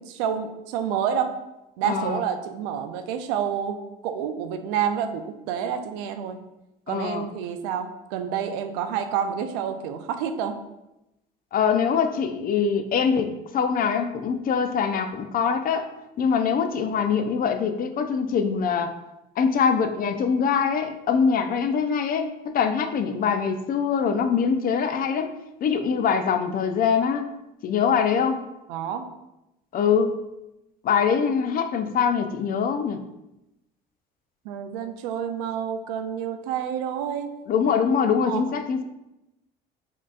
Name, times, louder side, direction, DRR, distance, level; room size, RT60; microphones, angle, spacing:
voice 1, 0.0-1.3 1.8-6.4 6.9-10.5 28.7-29.1 34.5-37.3 38.2-38.4, right 8 dB, 85° right, 7 dB, 0.4 m, -28 dB
voice 2, 1.8-2.2 6.9-7.3 11.5-15.9 16.2-18.9 19.4-25.3 25.6-27.3 27.6-28.4 29.7-30.2 30.8-33.0 37.5-38.8, left 6 dB, 45° left, 7 dB, 0.4 m, -23 dB
4.3 x 2.9 x 2.4 m, 0.92 s
supercardioid pair, 75°, 20 cm